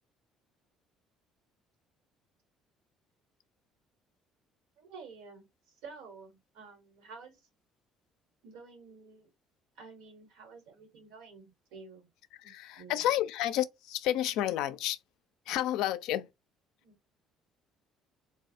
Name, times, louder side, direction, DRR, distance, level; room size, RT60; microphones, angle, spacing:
voice 1, 4.8-7.5 8.4-9.3 9.7-12.1 12.4-13.1 16.8-17.0, right 4 dB, 85° right, 1.2 m, -51 dB
voice 2, 12.3-15.0 15.5-16.3, left 12 dB, 80° left, 0.4 m, -31 dB
3.3 x 2.2 x 2.6 m
supercardioid pair, 90°, 0 cm